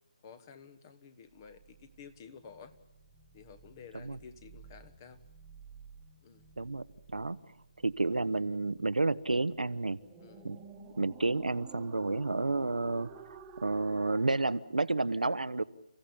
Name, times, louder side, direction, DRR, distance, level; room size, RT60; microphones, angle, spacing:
voice 1, 0.2-2.7 3.3-5.2 6.2-6.4 10.2-10.5, left 6 dB, 25° left, 11 dB, 1.3 m, -52 dB
sound 1, 1.3-14.6, right 6 dB, 10° right, 1.5 m, -53 dB
voice 2, 7.8-10.0 10.4-10.6 11.0-15.6, right 3 dB, 85° right, 13 dB, 0.9 m, -31 dB
30.0 x 15.5 x 8.7 m, 0.91 s
figure-of-eight pair, 160°, 4 cm